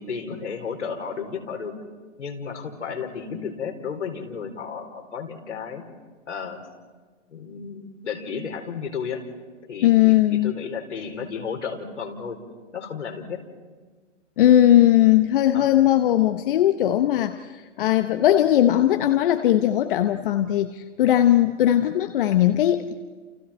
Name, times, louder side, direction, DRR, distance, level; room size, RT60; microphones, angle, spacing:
voice 1, 0.0-1.7 2.2-5.8 6.3-6.6 7.3-9.2 9.7-12.4 12.7-13.4 14.6-14.8 15.5-15.7, left 6 dB, 75° left, 2 dB, 4.6 m, -33 dB
voice 2, 9.8-10.5 14.4-22.9, left 12 dB, 45° left, 8 dB, 1.0 m, -19 dB
29.5 x 29.5 x 4.4 m, 1.4 s
hypercardioid pair, 135°, 36 cm